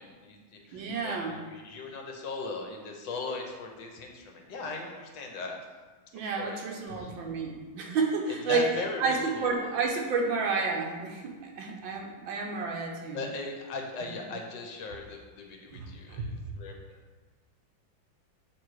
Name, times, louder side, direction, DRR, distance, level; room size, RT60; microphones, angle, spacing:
voice 1, 0.0-5.6 6.1-6.6 6.9-7.2 7.8-7.9 8.3-9.7 13.1-17.0, left 3 dB, 75° left, 2 dB, 1.4 m, -39 dB
voice 2, 0.7-1.4 6.1-8.7 9.0-13.2 15.7-15.9 16.2-16.3, right 4 dB, 80° right, 1 dB, 1.6 m, -30 dB
7.3 x 3.1 x 4.7 m, 1.3 s
omnidirectional pair, 2.1 m